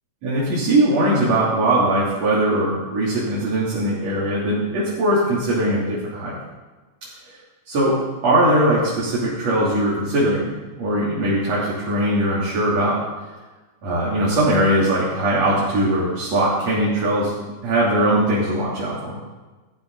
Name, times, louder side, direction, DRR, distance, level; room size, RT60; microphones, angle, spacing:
voice 1, 0.2-6.4 7.7-8.0 8.2-13.0 13.8-19.2, right 1 dB, 60° right, -8 dB, 4.4 m, -20 dB
21.0 x 14.0 x 4.1 m, 1.2 s
omnidirectional pair, 3.4 m